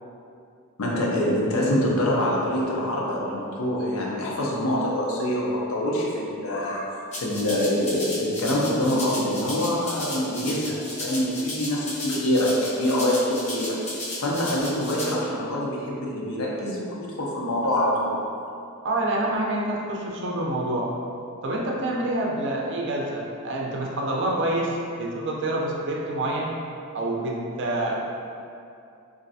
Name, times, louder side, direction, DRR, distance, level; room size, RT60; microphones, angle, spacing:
voice 1, 0.8-6.9 7.2-13.8 14.2-18.2, left 1 dB, 75° left, -3 dB, 0.6 m, -25 dB
Rattle (instrument), 7.1-15.1, left 1 dB, 30° left, 0.7 m, -34 dB
voice 2, 18.8-20.9 21.4-26.6 26.9-27.9, right 1 dB, 60° right, -2 dB, 0.5 m, -27 dB
3.1 x 2.5 x 2.6 m, 2.5 s
head